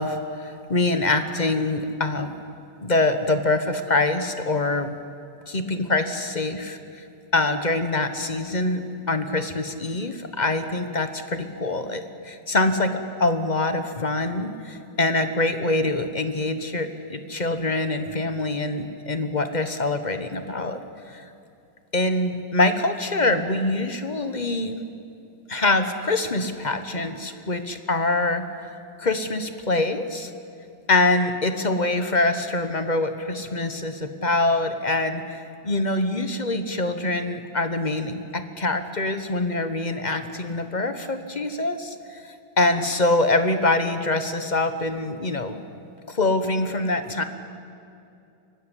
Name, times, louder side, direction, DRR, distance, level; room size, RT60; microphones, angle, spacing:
voice 1, 0.0-2.4 2.8-4.9 5.5-6.8 7.3-20.8 21.1-21.2 21.9-24.8 25.5-28.5 29.0-30.3 30.9-45.6 46.1-47.2, left 2 dB, 30° left, 9 dB, 1.1 m, -24 dB
23.5 x 17.5 x 9.9 m, 2.6 s
omnidirectional pair, 1.9 m